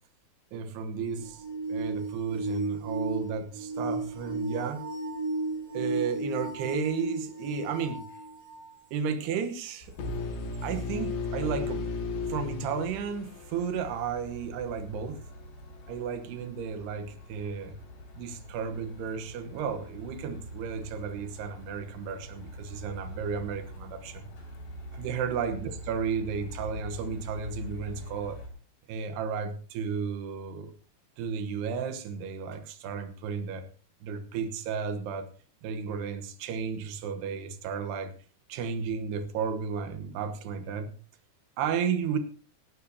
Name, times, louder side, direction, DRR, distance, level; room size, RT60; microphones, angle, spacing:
voice 1, 0.5-4.8 5.7-8.0 8.9-9.9 10.6-11.9 12.2-15.2 15.9-17.8 18.2-24.3 24.9-28.4 28.9-30.7 31.2-33.7 34.0-35.3 35.6-38.1 38.5-40.9 41.6-42.2, right 6 dB, 85° right, 10 dB, 3.2 m, -33 dB
sound 1, 1.1-8.7 9.4-9.5 10.5-10.6, right 2 dB, 40° right, 6.0 m, -34 dB
Truck, 9.8-28.5, equal, 85° left, 5.7 m, -45 dB
sound 2, 10.0-13.9, left 4 dB, 65° left, 3.8 m, -34 dB
17.5 x 13.5 x 2.8 m, 0.39 s
omnidirectional pair, 4.7 m